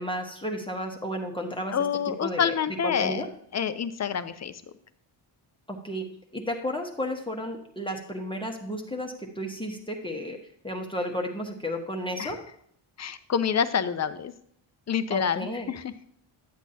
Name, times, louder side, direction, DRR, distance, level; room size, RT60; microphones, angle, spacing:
voice 1, 0.0-1.7 2.2-3.3 5.7-6.0 6.3-10.4 10.6-12.4 15.1-15.7, equal, 10° left, 1 dB, 1.1 m, -33 dB
voice 2, 1.7-4.6 12.2-12.3 13.0-14.3 14.9-15.9, left 7 dB, 35° left, 11 dB, 0.6 m, -27 dB
11.5 x 8.2 x 2.8 m, 0.67 s
cardioid pair, 120°, 49 cm